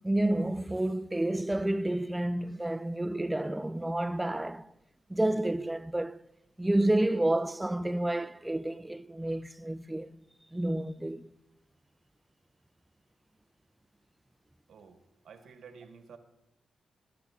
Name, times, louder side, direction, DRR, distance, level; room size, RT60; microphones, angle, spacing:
voice 1, 0.0-4.7 5.1-6.2 6.6-10.2 10.5-11.3, right 1 dB, 10° right, 0.4 m, -30 dB
voice 2, 14.7-16.2, right 6 dB, 80° right, 1.1 m, -52 dB
16.5 x 12.0 x 2.4 m
cardioid pair, 75°, 0 cm